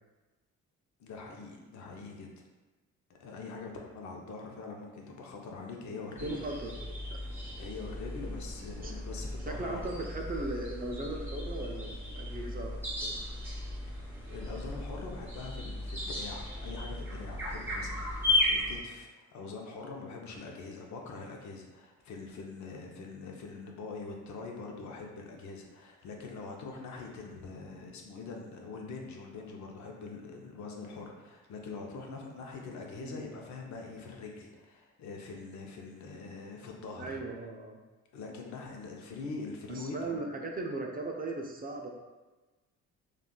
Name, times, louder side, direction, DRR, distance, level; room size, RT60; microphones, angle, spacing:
voice 1, 1.0-2.3 3.1-6.4 7.6-10.0 13.9-14.0 14.3-37.2 38.1-40.2, left 4 dB, 70° left, 0 dB, 0.6 m, -43 dB
sound 1, 6.2-18.8, left 1 dB, 5° right, 1.0 m, -35 dB
voice 2, 6.2-7.2 8.8-8.9 9.4-13.2 33.0-33.2 37.0-37.8 39.7-41.9, right 2 dB, 30° right, 1 dB, 0.4 m, -38 dB
3.5 x 2.4 x 2.3 m, 1.2 s
cardioid pair, 90°, 30 cm